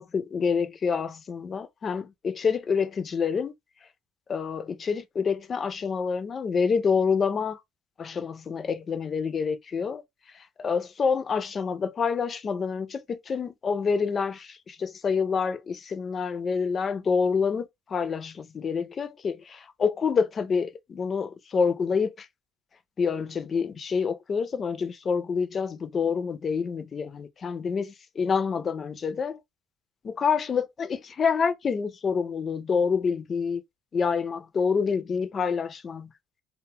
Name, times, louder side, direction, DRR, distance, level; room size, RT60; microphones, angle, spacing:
voice 1, 0.0-3.5 4.3-7.6 8.0-10.0 10.3-22.3 23.0-29.4 30.0-33.6 33.9-36.1, left 5 dB, 40° left, 0.4 m, -27 dB
2.2 x 2.0 x 3.3 m
supercardioid pair, 80°, 0 cm